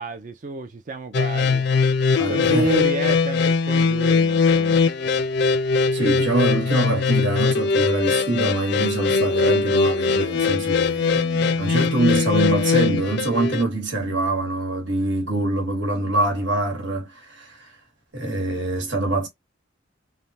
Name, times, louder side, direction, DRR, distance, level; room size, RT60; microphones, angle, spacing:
voice 1, 0.0-1.7 2.2-4.9, right 2 dB, 40° right, 0.4 m, -29 dB
sound 1, 1.1-13.6, left 4 dB, 55° left, 0.3 m, -21 dB
voice 2, 2.2-2.8 5.9-17.7 18.1-19.3, right 2 dB, 65° right, 1.2 m, -24 dB
3.3 x 2.1 x 2.7 m
head